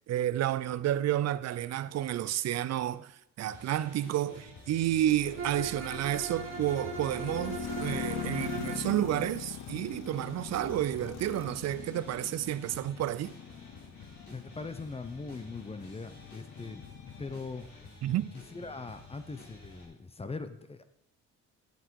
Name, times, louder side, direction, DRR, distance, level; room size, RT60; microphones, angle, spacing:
voice 1, 0.1-3.1 3.4-13.3 18.0-18.3, right 12 dB, 60° right, 0.5 m, -30 dB
sound 1, 3.5-19.8, left 3 dB, 75° left, 3.7 m, -52 dB
sound 2, 4.7-17.8, left 9 dB, 60° left, 0.7 m, -42 dB
Bowed string instrument, 5.4-8.9, right 4 dB, 45° right, 1.4 m, -39 dB
voice 2, 14.3-17.7 18.5-20.8, left 3 dB, 20° left, 0.8 m, -41 dB
10.0 x 7.8 x 4.7 m
cardioid pair, 90°, 30 cm